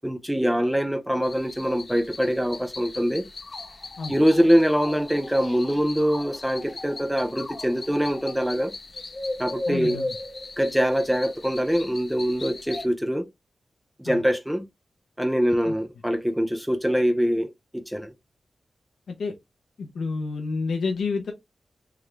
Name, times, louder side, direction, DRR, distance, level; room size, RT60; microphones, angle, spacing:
voice 1, 0.0-3.3 4.1-8.7 9.4-10.0 10.6-13.3 14.0-14.6 15.2-18.1, equal, 5° right, 0.4 m, -23 dB
sound 1, 1.2-12.9, left 2 dB, 35° left, 0.7 m, -37 dB
voice 2, 9.7-10.1 14.0-14.2 15.6-15.7 19.1-19.3 19.8-21.3, left 4 dB, 85° left, 0.9 m, -29 dB
3.6 x 3.3 x 3.2 m
wide cardioid pair, 170°, 0 cm